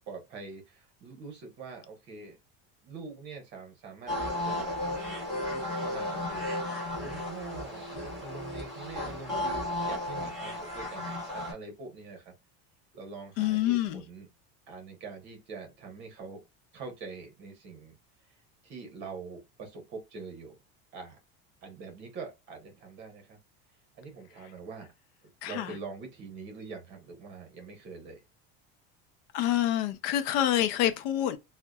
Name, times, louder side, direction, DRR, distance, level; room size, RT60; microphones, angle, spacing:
voice 1, 0.0-2.4 2.8-4.8 5.3-12.3 12.9-14.3 14.7-16.4 16.7-17.9 18.6-20.6 20.9-21.2 21.6-23.4 24.0-24.9 25.4-28.2, right 4 dB, 35° right, 0.9 m, -44 dB
sound 1, 4.1-11.5, left 1 dB, ahead, 1.4 m, -34 dB
voice 2, 13.4-14.0 25.4-25.8 29.3-31.4, left 12 dB, 65° left, 0.5 m, -27 dB
2.6 x 2.1 x 2.2 m
cardioid pair, 175°, 31 cm